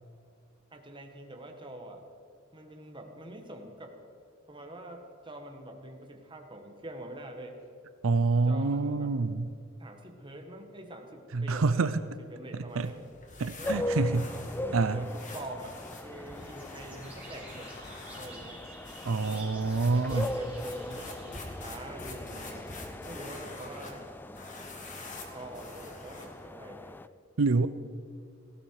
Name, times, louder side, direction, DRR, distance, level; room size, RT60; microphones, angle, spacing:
voice 1, 0.7-2.0 2.5-3.9 4.5-7.6 8.5-9.1 9.8-11.9 12.3-13.0 13.6-13.8 14.5-15.8 16.0-17.7 18.2-18.6 19.3-19.5 19.9-22.8 23.1-24.1 25.3-27.0, right 1 dB, 25° right, 3 dB, 1.7 m, -45 dB
voice 2, 8.0-9.5 11.3-12.0 12.8-12.9 13.4-14.3 14.7-15.0 19.0-20.3 27.4-27.7, right 3 dB, 90° right, 12 dB, 0.6 m, -26 dB
sound 1, 12.7-26.5, left 2 dB, 40° left, 2.2 m, -47 dB
sound 2, 13.6-27.1, left 1 dB, 10° left, 0.3 m, -40 dB
sound 3, 16.1-22.7, right 2 dB, 5° right, 4.7 m, -51 dB
18.5 x 15.5 x 4.8 m, 2.4 s
head